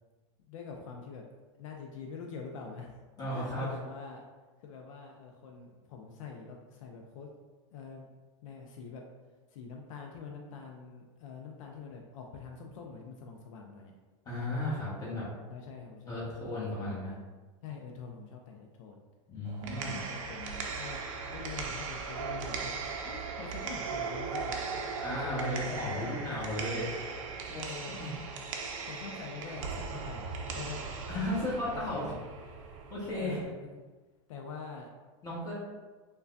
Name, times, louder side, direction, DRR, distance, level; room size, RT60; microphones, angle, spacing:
voice 1, 0.5-1.2 1.5-4.3 4.6-7.3 7.7-8.1 8.4-9.0 9.5-13.9 15.5-16.2 16.7-17.2 17.6-19.0 19.6-21.0 21.3-22.7 23.0-24.6 25.2-26.5 27.5-28.0 28.9-30.8 31.3-31.4 31.7-32.1 33.2-33.8 34.3-34.9, left 5 dB, 80° left, 1 dB, 0.4 m, -45 dB
voice 2, 3.2-3.7 14.2-15.3 16.1-17.1 19.3-20.0 25.0-26.9 27.5-27.6 28.0-28.2 31.1-32.1 32.9-33.4 35.2-35.5, left 1 dB, 20° left, -7 dB, 1.2 m, -35 dB
sound 1, 19.4-33.4, right 5 dB, 75° right, 0.5 m, -38 dB
3.2 x 2.2 x 2.5 m, 1.3 s
supercardioid pair, 125°, 17 cm